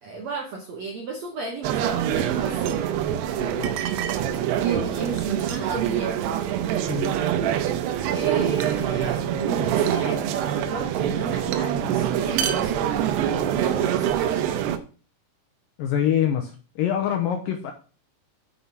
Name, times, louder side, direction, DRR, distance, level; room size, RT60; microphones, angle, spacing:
voice 1, 0.0-2.9 4.6-6.2 8.1-12.9 13.5-14.4, right 4 dB, 70° right, 0 dB, 1.7 m, -33 dB
sound 1, 1.6-14.8, right 10 dB, 90° right, 2.8 m, -25 dB
voice 2, 3.4-3.7 6.9-7.1 15.8-17.7, left 9 dB, 75° left, 5 dB, 2.1 m, -25 dB
7.1 x 5.6 x 6.0 m, 0.36 s
omnidirectional pair, 4.7 m